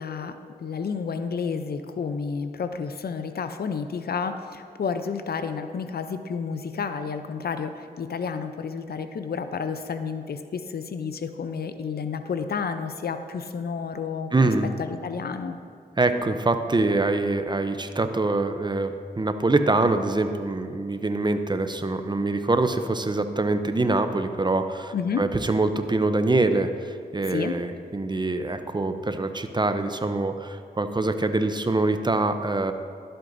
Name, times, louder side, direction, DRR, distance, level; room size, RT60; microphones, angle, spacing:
voice 1, 0.0-14.5 14.8-15.6 24.9-25.2 27.2-27.6, left 5 dB, 65° left, 9 dB, 0.5 m, -31 dB
voice 2, 14.3-14.7 16.0-32.7, right 2 dB, 25° right, 9 dB, 0.6 m, -24 dB
12.0 x 7.8 x 2.6 m, 2.3 s
cardioid pair, 45°, 17 cm